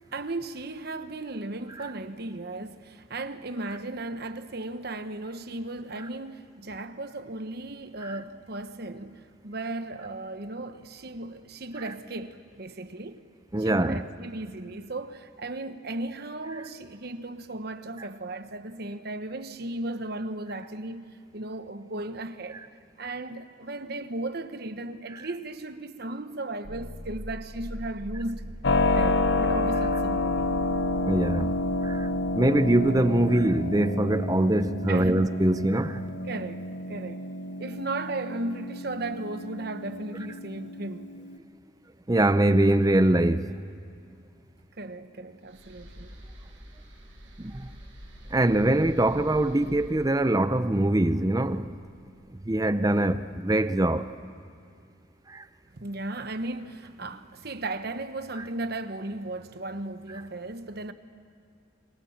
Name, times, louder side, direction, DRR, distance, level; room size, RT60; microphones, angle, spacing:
voice 1, 0.1-13.2 13.6-22.6 23.0-28.4 28.9-30.5 34.9-35.2 36.3-36.6 36.9-37.2 37.6-41.1 44.8-46.1 55.7-60.9, right 2 dB, 50° right, 1.1 m, -36 dB
voice 2, 13.5-14.0 31.0-31.5 31.8-32.1 32.3-36.0 42.1-43.5 47.4-47.7 48.3-51.7 52.5-54.1 55.3-55.4, right 1 dB, 20° right, 0.6 m, -23 dB
sound 1, 26.6-33.5, equal, 85° right, 1.8 m, -42 dB
Keyboard (musical), 28.6-41.4, left 2 dB, 60° left, 0.8 m, -29 dB
sound 2, 45.4-52.6, equal, 70° right, 6.6 m, -48 dB
28.5 x 24.0 x 7.3 m
head